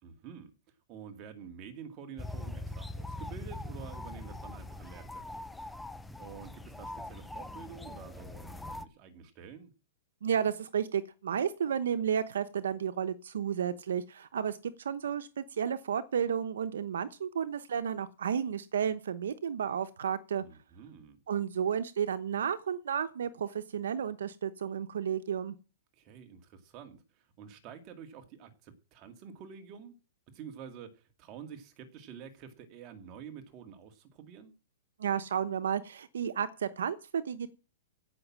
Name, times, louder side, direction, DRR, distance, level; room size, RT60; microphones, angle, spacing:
voice 1, 0.0-0.5 0.9-5.4 6.2-9.7 20.4-21.2 25.9-30.0 30.3-34.5, right 7 dB, 30° right, 6 dB, 2.2 m, -48 dB
sound 1, 2.2-8.9, left 2 dB, 5° left, 0.6 m, -42 dB
voice 2, 10.2-20.4 21.3-25.6 35.0-37.5, right 8 dB, 90° right, 11 dB, 1.0 m, -32 dB
16.5 x 6.2 x 7.4 m, 0.35 s
hypercardioid pair, 160°, 0 cm